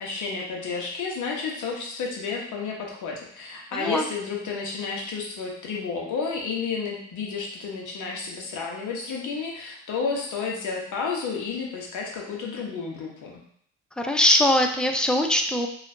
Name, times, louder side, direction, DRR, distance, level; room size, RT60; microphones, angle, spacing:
voice 1, 0.0-13.4, left 5 dB, 75° left, -1 dB, 1.1 m, -31 dB
voice 2, 3.7-4.0 14.0-15.7, left 1 dB, 5° left, 4 dB, 0.4 m, -21 dB
3.0 x 2.4 x 4.2 m, 0.65 s
cardioid pair, 90°, 30 cm